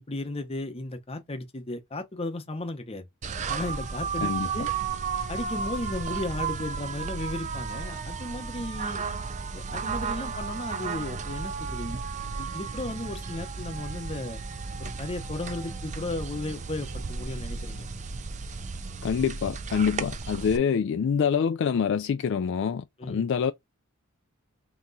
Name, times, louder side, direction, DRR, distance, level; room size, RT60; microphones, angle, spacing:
voice 1, 0.0-3.1 3.5-4.7 5.3-9.0 9.5-12.0 12.4-14.4 14.8-17.9 23.0-23.2, left 2 dB, 25° left, 0.8 m, -35 dB
sound 1, 3.2-20.6, right 5 dB, 35° right, 0.5 m, -34 dB
voice 2, 19.0-23.5, left 7 dB, 55° left, 0.3 m, -26 dB
3.5 x 2.9 x 3.9 m
head